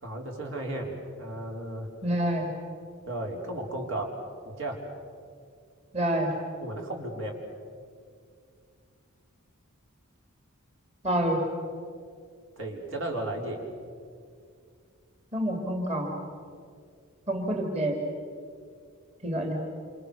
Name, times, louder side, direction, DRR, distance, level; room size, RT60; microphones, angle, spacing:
voice 1, 0.0-0.9 1.2-1.9 3.1-4.1 4.4-4.8 6.6-7.4 12.6-13.6, right 1 dB, 60° right, 1 dB, 4.3 m, -34 dB
voice 2, 2.0-2.5 5.9-6.3 11.0-11.4 15.3-16.1 17.3-17.9 19.2-19.5, right 1 dB, 30° right, 1 dB, 2.9 m, -27 dB
28.5 x 27.5 x 6.9 m, 2.2 s
head